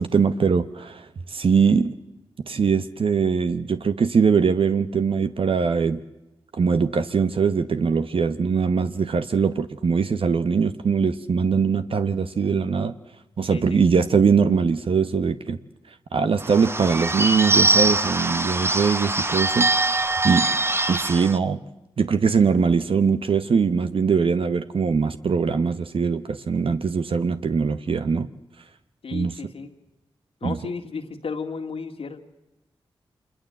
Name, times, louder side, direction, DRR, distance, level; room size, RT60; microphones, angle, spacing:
voice 1, 0.0-1.9 2.5-6.0 6.5-12.9 13.4-15.6 16.1-20.0 20.2-20.5 20.9-21.6 22.0-28.3 29.1-29.3 30.4-30.6, right 5 dB, 65° right, 10 dB, 0.9 m, -22 dB
voice 2, 13.5-13.8 29.0-29.7 30.4-32.2, left 5 dB, 75° left, 4 dB, 2.1 m, -33 dB
Bird / Bell, 16.4-21.4, right 2 dB, 25° right, 1.2 m, -22 dB
25.5 x 21.0 x 7.7 m, 0.98 s
cardioid pair, 45°, 10 cm